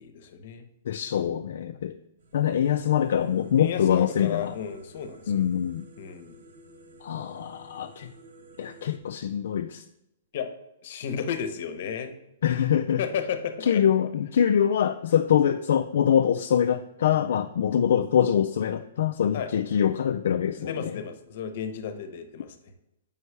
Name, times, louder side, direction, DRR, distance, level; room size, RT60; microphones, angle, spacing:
voice 1, 0.0-0.7 3.6-5.5 6.0-6.4 10.3-10.5 10.8-12.1 13.0-13.8 19.3-19.5 20.6-22.7, left 7 dB, 55° left, 8 dB, 0.8 m, -33 dB
voice 2, 0.9-1.9 2.3-4.5 5.3-5.9 7.0-8.1 8.6-9.8 12.4-13.0 13.7-21.0, left 9 dB, 70° left, 6 dB, 0.3 m, -24 dB
sound 1, 2.2-9.0, right 2 dB, 85° right, 1.0 m, -53 dB
8.0 x 5.4 x 3.3 m, 0.87 s
hypercardioid pair, 155°, 0 cm